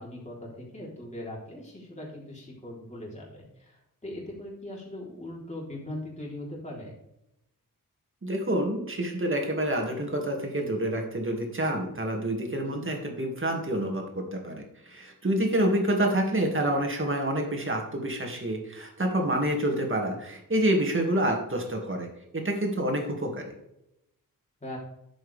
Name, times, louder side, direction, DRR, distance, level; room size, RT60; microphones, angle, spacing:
voice 1, 0.0-6.9 12.6-12.9 24.6-24.8, left 1 dB, 20° left, -4 dB, 3.7 m, -40 dB
voice 2, 8.2-22.1 22.3-23.5, right 1 dB, 35° right, 2 dB, 2.2 m, -28 dB
11.5 x 7.7 x 3.5 m, 0.85 s
wide cardioid pair, 125°, 35 cm